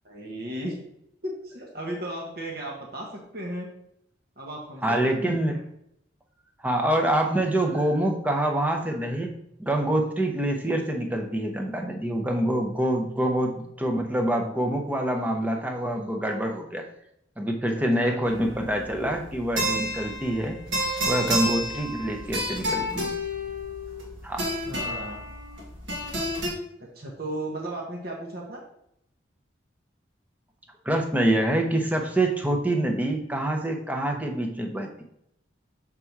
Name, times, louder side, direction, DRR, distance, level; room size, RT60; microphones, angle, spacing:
voice 1, 0.0-0.8 1.2-3.7 4.4-5.6 17.7-18.2 24.6-25.2 26.8-28.6, right 1 dB, 55° right, -1 dB, 1.1 m, -35 dB
voice 2, 4.8-5.6 6.6-16.9 17.4-20.6 21.0-23.1 24.2-24.4 30.8-35.0, right 1 dB, 10° right, 2 dB, 0.7 m, -26 dB
sound 1, 18.3-26.5, equal, 75° right, 1.7 m, -30 dB
6.7 x 3.6 x 4.6 m, 0.76 s
head